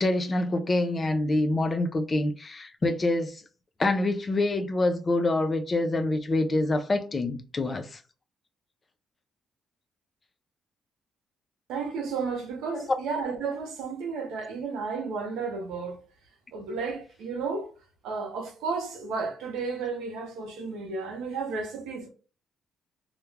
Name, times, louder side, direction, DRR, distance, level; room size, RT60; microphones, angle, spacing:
voice 1, 0.0-3.4 3.8-8.0 12.7-12.8, left 2 dB, 30° left, 0.4 m, -26 dB
voice 2, 11.7-16.0 16.5-17.7 18.0-22.1, right 4 dB, 90° right, 0.7 m, -33 dB
2.3 x 2.1 x 3.1 m
cardioid pair, 90°, 0 cm